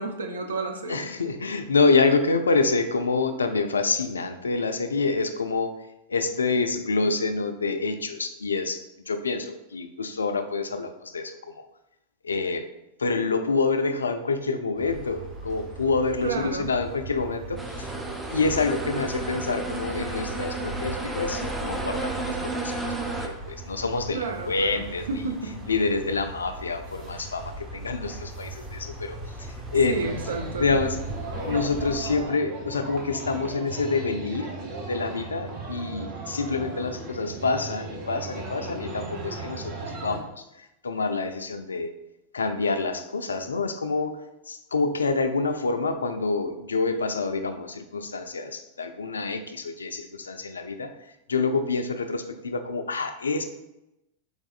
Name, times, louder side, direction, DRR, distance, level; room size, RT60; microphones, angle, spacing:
voice 1, 0.0-1.1 16.2-16.7 24.1-25.6 29.9-30.7, right 3 dB, 70° right, 4 dB, 0.5 m, -31 dB
voice 2, 0.9-5.7 6.1-11.7 12.2-12.6 13.0-17.9 18.3-22.9 23.2-25.2 25.7-30.0 30.6-31.0 31.5-34.5 34.9-41.9 42.3-44.2 44.5-50.9 51.3-53.4, left 4 dB, 75° left, 8 dB, 0.3 m, -27 dB
sound 1, 14.8-32.2, right 1 dB, 20° right, 1.1 m, -39 dB
sound 2, 17.6-23.3, right 3 dB, 5° right, 0.5 m, -32 dB
sound 3, 29.9-40.2, right 3 dB, 50° right, 0.9 m, -37 dB
3.9 x 3.5 x 2.5 m, 0.91 s
figure-of-eight pair, 90°, 0 cm